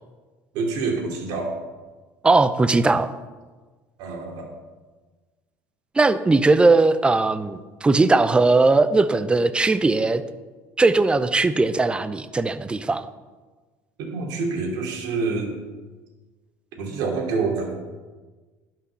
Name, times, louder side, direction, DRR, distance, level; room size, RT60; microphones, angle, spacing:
voice 1, 0.5-1.6 4.0-4.5 14.0-15.6 16.8-17.7, right 4 dB, 70° right, 1 dB, 3.0 m, -27 dB
voice 2, 2.2-3.1 6.0-10.2 10.8-13.1, right 3 dB, 15° right, 13 dB, 0.6 m, -19 dB
11.0 x 6.1 x 7.0 m, 1.3 s
supercardioid pair, 95°, 7 cm